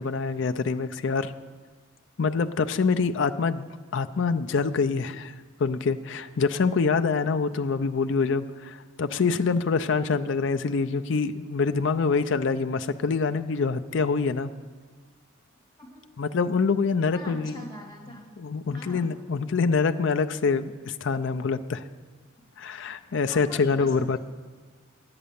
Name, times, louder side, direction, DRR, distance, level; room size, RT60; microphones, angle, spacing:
voice 1, 0.0-1.3 2.2-3.7 3.9-5.3 5.6-14.5 16.2-17.6 18.4-21.8 22.6-24.2, left 4 dB, 65° left, 8 dB, 0.5 m, -25 dB
voice 2, 17.1-18.3 18.7-19.1 23.3-24.2, equal, 20° left, -1 dB, 2.3 m, -43 dB
10.5 x 8.7 x 6.9 m, 1.4 s
head